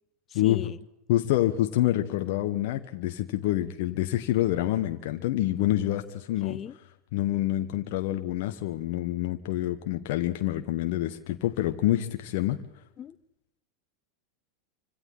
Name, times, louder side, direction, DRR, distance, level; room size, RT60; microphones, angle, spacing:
voice 1, 0.3-0.8 6.4-6.8 13.0-13.2, left 10 dB, 35° left, 17 dB, 0.9 m, -39 dB
voice 2, 1.1-6.6 7.1-12.6, left 14 dB, 60° left, 7 dB, 1.1 m, -27 dB
27.0 x 25.5 x 3.9 m, 0.88 s
hypercardioid pair, 90°, 0 cm